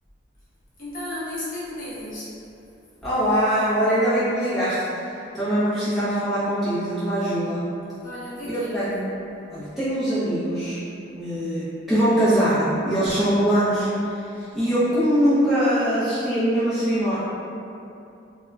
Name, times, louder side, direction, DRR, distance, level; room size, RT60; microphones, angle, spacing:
voice 1, 0.8-2.3 8.0-8.9, left 1 dB, 40° left, -10 dB, 0.7 m, -33 dB
voice 2, 3.0-7.6 8.5-9.1 9.5-10.8 11.1-17.2, equal, ahead, -14 dB, 0.5 m, -22 dB
2.3 x 2.1 x 3.2 m, 2.7 s
head